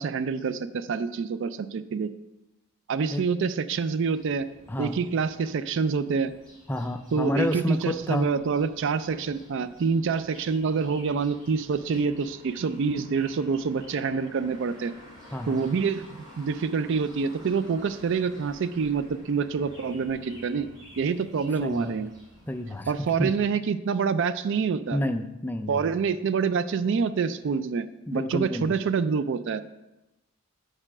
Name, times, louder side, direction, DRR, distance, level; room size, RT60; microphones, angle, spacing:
voice 1, 0.0-2.1 2.9-4.5 4.8-6.3 7.1-14.9 15.5-20.7 21.0-22.1 22.9-25.0 25.7-27.9 28.1-29.6, right 5 dB, 60° right, 13 dB, 0.4 m, -27 dB
sound 1, 4.1-23.4, equal, 20° right, 2.3 m, -51 dB
voice 2, 4.7-5.0 6.7-8.3 15.3-15.6 21.6-22.0 22.5-23.3 24.9-25.9 28.1-28.8, left 1 dB, 10° left, 7 dB, 0.3 m, -29 dB
6.7 x 4.9 x 6.0 m, 0.99 s
head